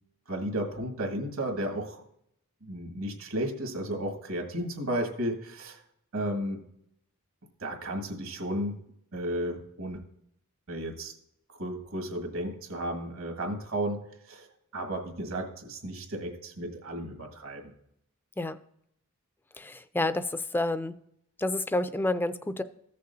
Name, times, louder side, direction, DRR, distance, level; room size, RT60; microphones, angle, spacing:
voice 1, 0.3-2.0 2.6-5.8 6.1-6.6 7.6-8.7 9.1-10.0 10.7-11.1 11.6-14.0 14.3-14.5 14.7-17.7, right 1 dB, 75° right, 3 dB, 1.8 m, -33 dB
voice 2, 19.6-20.9 21.4-22.6, left 2 dB, 10° left, 12 dB, 0.3 m, -29 dB
14.5 x 6.6 x 2.7 m, 0.73 s
head